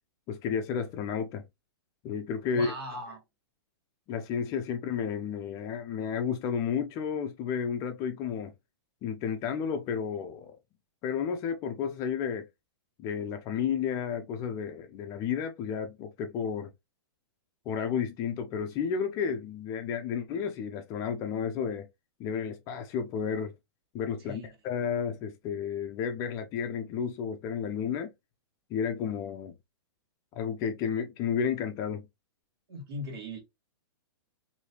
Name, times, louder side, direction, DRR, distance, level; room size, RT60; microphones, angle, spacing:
voice 1, 0.3-1.4 2.0-2.7 4.1-8.5 9.0-10.6 11.0-12.5 13.0-16.7 17.7-21.9 22.2-23.5 23.9-28.1 28.7-29.5 30.3-32.1, left 7 dB, 25° left, 0.5 m, -32 dB
voice 2, 2.5-3.2 24.2-24.5 32.7-33.4, equal, 65° right, 1.9 m, -39 dB
3.2 x 2.7 x 2.8 m
hypercardioid pair, 155°, 14 cm